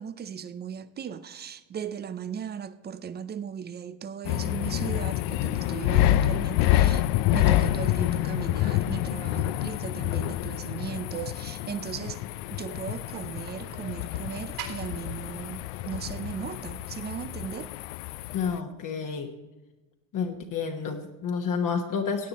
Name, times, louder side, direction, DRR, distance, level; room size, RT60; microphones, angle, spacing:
voice 1, 0.0-7.1 7.3-12.2 12.5-17.7, right 8 dB, 25° right, 0.3 m, -37 dB
sound 1, 4.2-18.6, left 14 dB, 65° left, 0.5 m, -27 dB
sound 2, 12.7-17.7, right 7 dB, 75° right, 3.8 m, -47 dB
voice 2, 18.3-19.3 20.1-22.3, left 6 dB, 40° left, 1.2 m, -30 dB
17.0 x 8.5 x 4.1 m
cardioid pair, 130°, 47 cm